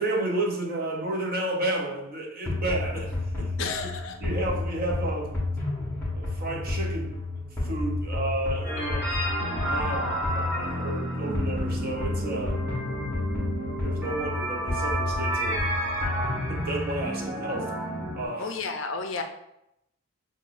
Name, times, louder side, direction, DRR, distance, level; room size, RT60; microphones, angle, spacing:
voice 1, 0.0-3.9 4.2-5.4 6.1-7.2 7.6-12.6 13.8-15.7 16.5-17.7 18.1-18.5, right 2 dB, 45° right, 0 dB, 0.6 m, -32 dB
sound 1, 2.5-16.7, left 2 dB, 10° left, 0.9 m, -31 dB
voice 2, 3.6-4.2 18.4-19.2, left 4 dB, 60° left, 5 dB, 0.4 m, -32 dB
sound 2, 8.6-18.3, right 1 dB, 10° right, 1.2 m, -31 dB
5.7 x 2.1 x 2.5 m, 0.82 s
head